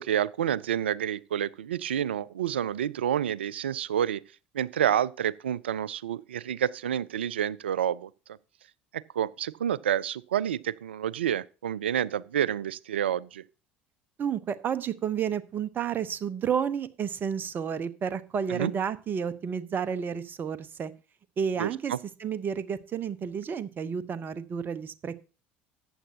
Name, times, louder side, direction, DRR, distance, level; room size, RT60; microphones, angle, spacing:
voice 1, 0.0-4.2 4.5-8.1 8.9-13.4 18.5-18.7 21.6-22.0, right 10 dB, 75° right, 0.4 m, -29 dB
voice 2, 14.2-20.9 21.4-21.9 22.2-25.2, right 7 dB, 35° right, 0.9 m, -31 dB
14.0 x 8.7 x 2.9 m
figure-of-eight pair, 65°, 6 cm